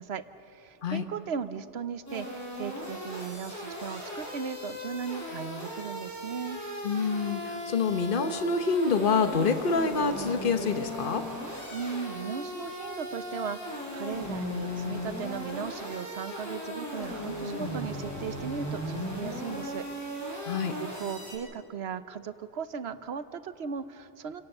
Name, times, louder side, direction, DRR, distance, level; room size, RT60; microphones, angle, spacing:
voice 1, 0.0-6.6 11.7-19.9 20.8-24.4, right 6 dB, 70° right, 12 dB, 1.1 m, -37 dB
sound 1, 2.1-21.4, left 1 dB, 15° left, 6.3 m, -37 dB
voice 2, 6.8-11.2 20.5-20.7, left 4 dB, 50° left, 8 dB, 1.2 m, -27 dB
28.5 x 17.5 x 6.7 m, 2.7 s
omnidirectional pair, 1.1 m